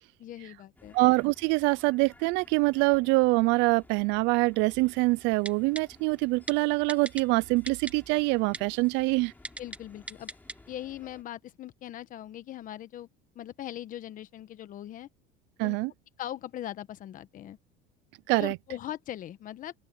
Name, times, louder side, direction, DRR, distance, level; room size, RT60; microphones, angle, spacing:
voice 1, 0.2-1.0 9.6-10.3 10.7-13.1 13.3-15.1 15.6-15.8 16.2-17.6 18.4-19.7, left 12 dB, 45° left, 1.3 m, -40 dB
sound 1, 0.8-11.2, left 2 dB, 10° left, 3.4 m, -57 dB
voice 2, 0.9-9.3 15.6-15.9 18.3-18.6, right 25 dB, 65° right, 0.4 m, -25 dB
Typing, 5.4-5.8 6.5-6.6 6.9-7.2 7.7-7.9 8.5-8.6 9.4-9.8 10.1-10.5 10.9-11.0, right 2 dB, 5° right, 1.3 m, -37 dB
open air
cardioid pair, 125°, 20 cm